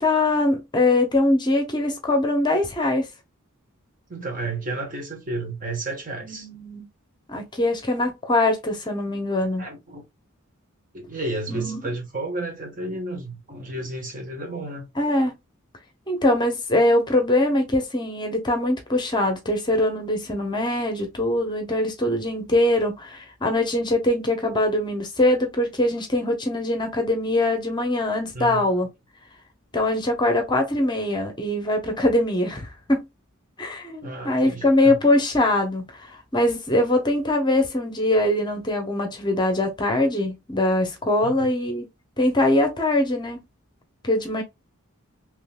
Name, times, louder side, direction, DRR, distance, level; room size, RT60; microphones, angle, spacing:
voice 1, 0.0-3.1 6.2-6.9 7.3-9.6 11.5-11.8 15.0-15.4 16.1-28.9 29.7-33.0 33.6-41.9 42.2-43.4 44.0-44.4, left 1 dB, 20° left, 0.8 m, -22 dB
voice 2, 4.1-6.5 9.6-10.0 10.9-14.8 28.3-28.8 34.0-35.0 41.2-41.5, right 2 dB, 40° right, 1.2 m, -32 dB
3.8 x 3.0 x 2.2 m
head